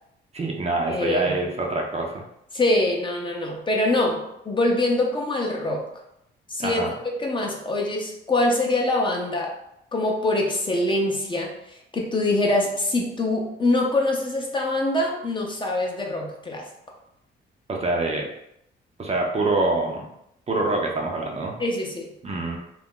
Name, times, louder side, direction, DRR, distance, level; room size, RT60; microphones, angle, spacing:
voice 1, 0.3-2.2 6.6-6.9 17.7-18.3 19.0-20.1 20.5-21.6 22.2-22.6, right 2 dB, 30° right, 0 dB, 0.6 m, -25 dB
voice 2, 0.9-1.3 2.5-5.9 6.5-6.9 7.2-9.5 9.9-16.7 21.6-22.1, left 2 dB, 25° left, 0 dB, 0.6 m, -24 dB
2.4 x 2.0 x 3.7 m, 0.77 s
cardioid pair, 90°, 20 cm